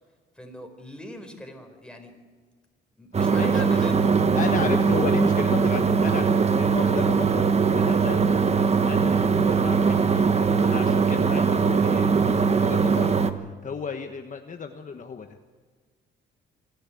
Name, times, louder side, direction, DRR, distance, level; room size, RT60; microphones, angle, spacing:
voice 1, 0.4-2.1 3.0-4.2, left 1 dB, 5° left, 4 dB, 4.4 m, -40 dB
sound 1, 3.1-13.3, right 5 dB, 35° right, 1.3 m, -21 dB
voice 2, 3.3-3.9 4.3-7.4 7.7-15.4, left 5 dB, 40° left, 5 dB, 1.3 m, -34 dB
26.5 x 12.0 x 8.5 m, 1.5 s
cardioid pair, 90°, 20 cm